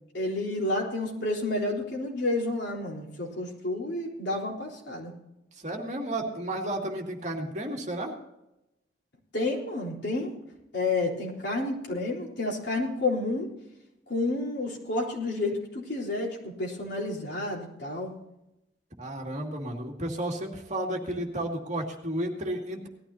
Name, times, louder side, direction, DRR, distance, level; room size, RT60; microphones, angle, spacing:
voice 1, 0.1-5.1 9.3-10.3 10.7-13.5 14.1-18.1, left 2 dB, 65° left, -2 dB, 3.8 m, -30 dB
voice 2, 5.6-8.2 19.0-22.9, right 1 dB, 40° right, 0 dB, 2.3 m, -32 dB
19.0 x 13.0 x 2.8 m, 0.88 s
head